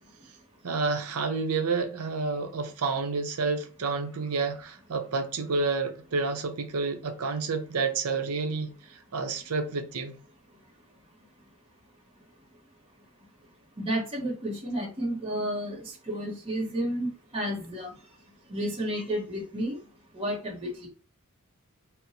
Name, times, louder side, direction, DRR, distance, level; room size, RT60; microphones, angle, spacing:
voice 1, 0.6-10.2, right 4 dB, 75° right, 0.6 m, -29 dB
voice 2, 13.8-17.9 18.5-19.8 20.1-20.9, equal, 25° right, 1.0 m, -31 dB
4.2 x 2.0 x 2.7 m
head